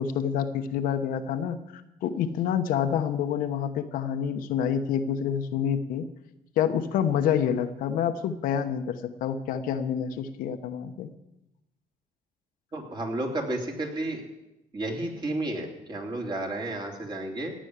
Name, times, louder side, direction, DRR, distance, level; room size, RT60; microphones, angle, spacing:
voice 1, 0.0-6.1 6.6-11.1, left 8 dB, 90° left, 8 dB, 1.1 m, -28 dB
voice 2, 12.7-14.2 14.7-17.5, right 1 dB, 30° right, 1 dB, 3.2 m, -32 dB
17.0 x 6.3 x 9.6 m, 0.91 s
cardioid pair, 115°, 14 cm